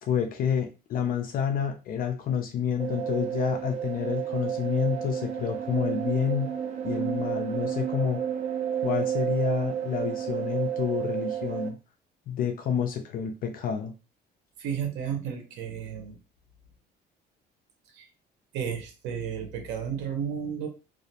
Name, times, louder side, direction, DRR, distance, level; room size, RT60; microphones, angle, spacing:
voice 1, 0.0-6.5 6.8-8.2 8.8-11.8 12.3-13.9, left 8 dB, 50° left, 4 dB, 0.4 m, -29 dB
sound 1, 2.8-11.7, right 9 dB, 35° right, 0.5 m, -31 dB
voice 2, 14.6-16.2 17.9-18.1 18.5-20.7, right 7 dB, 85° right, 4 dB, 0.7 m, -32 dB
2.4 x 2.0 x 2.7 m, 0.31 s
cardioid pair, 130°, 18 cm